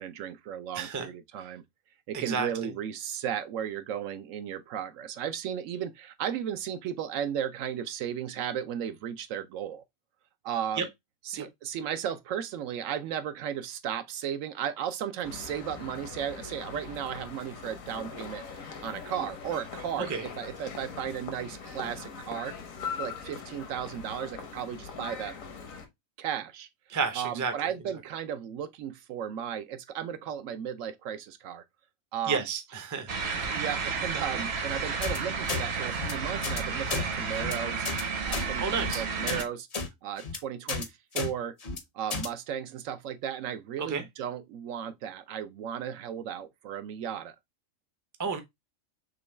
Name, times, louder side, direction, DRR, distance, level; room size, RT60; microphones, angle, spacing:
voice 1, 0.0-1.6 2.1-9.8 10.4-10.9 11.3-22.5 23.0-25.3 26.2-26.7 27.1-31.6 32.1-32.5 33.4-37.9 38.2-39.7 40.0-41.6 41.9-47.3, right 9 dB, 75° right, 0.9 m, -35 dB
voice 2, 0.7-1.1 1.4-1.5 2.1-2.7 10.8-10.9 11.3-11.5 20.1-20.2 26.9-27.5 32.3-33.1 38.6-39.0 43.8-44.0 48.2-48.4, right 5 dB, 20° right, 0.5 m, -31 dB
sound 1, 15.2-25.9, left 6 dB, 75° left, 1.3 m, -41 dB
sound 2, 33.1-39.4, right 5 dB, 55° right, 1.1 m, -32 dB
sound 3, 35.0-35.2 35.5-35.6 35.9-36.1 36.4-36.6 36.9-37.0 37.4-37.5 37.9-38.0 38.3-38.5 38.8-39.0 39.3-39.4 39.7-39.9 40.2-40.4 40.7-40.9 41.2-41.3 41.6-41.8 42.1-42.3, left 4 dB, 40° left, 0.6 m, -32 dB
6.2 x 2.2 x 3.2 m
omnidirectional pair, 1.4 m